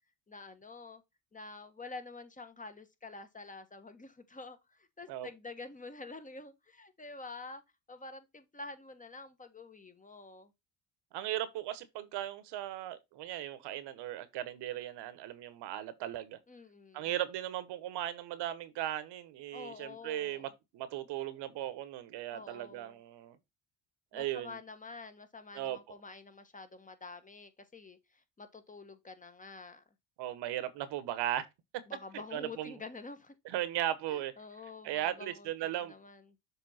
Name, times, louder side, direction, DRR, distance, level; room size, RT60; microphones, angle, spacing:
voice 1, 0.3-1.0 1.3-7.6 7.9-10.5 16.5-17.1 19.5-20.5 22.3-23.0 24.1-29.8 31.9-33.3 34.1-36.2, left 3 dB, 20° left, 1.0 m, -48 dB
voice 2, 11.1-16.4 16.9-23.4 24.1-24.6 25.5-25.8 30.2-31.5 32.3-32.7 33.4-34.3 34.8-35.9, right 12 dB, 70° right, 1.1 m, -37 dB
7.0 x 3.5 x 4.1 m
cardioid pair, 100°, 42 cm